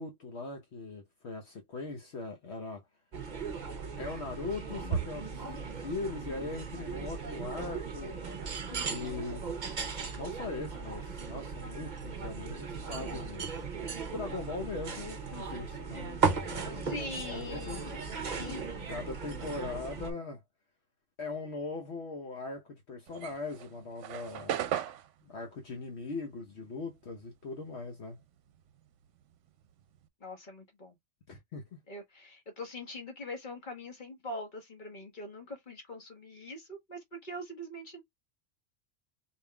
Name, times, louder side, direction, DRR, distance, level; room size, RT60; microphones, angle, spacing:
voice 1, 0.0-2.8 4.0-8.2 8.9-9.6 10.1-13.7 14.1-17.0 17.3-17.8 18.9-20.4 21.2-24.6 25.2-28.2 31.3-31.8, left 3 dB, 65° left, 1.2 m, -40 dB
sound 1, 3.1-20.1, right 5 dB, 45° right, 0.8 m, -37 dB
voice 2, 16.8-18.9 30.2-30.9 31.9-38.0, left 1 dB, 40° left, 1.5 m, -43 dB
sound 2, 23.1-27.8 28.1-30.1, right 10 dB, 80° right, 0.9 m, -38 dB
4.7 x 3.5 x 2.2 m
omnidirectional pair, 1.3 m